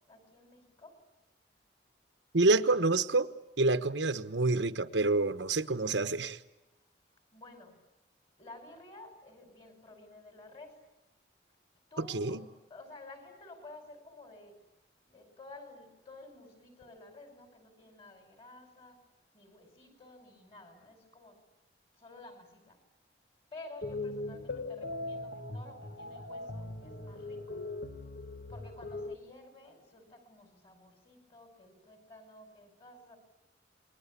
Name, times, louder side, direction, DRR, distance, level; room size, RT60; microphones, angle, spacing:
voice 1, 0.1-1.0 7.3-7.8 8.4-10.8 11.9-14.6 15.1-19.0 19.3-21.4 21.9-22.8 23.5-27.6 28.5-33.2, left 2 dB, 30° left, 5.5 m, -52 dB
voice 2, 2.3-3.3 3.6-6.4 12.0-12.4, right 2 dB, 80° right, 1.1 m, -27 dB
sound 1, 23.8-29.1, left 2 dB, 70° left, 1.6 m, -40 dB
29.0 x 21.5 x 8.5 m
head